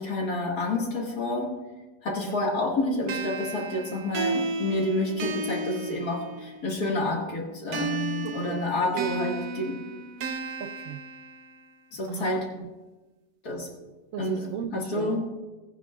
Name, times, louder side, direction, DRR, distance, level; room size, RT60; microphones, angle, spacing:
voice 1, 0.0-1.5 2.0-9.8 11.9-12.5 13.4-13.7 14.2-15.2, left 2 dB, 60° left, 0 dB, 2.3 m, -29 dB
sound 1, 3.1-6.7 7.7-11.7, right 3 dB, 65° right, 1.2 m, -34 dB
voice 2, 8.2-9.1 10.6-11.0 12.1-12.3 12.5-12.7 14.1-15.3, right 9 dB, 85° right, 8 dB, 0.7 m, -36 dB
17.5 x 9.5 x 2.4 m, 1.2 s
omnidirectional pair, 1.9 m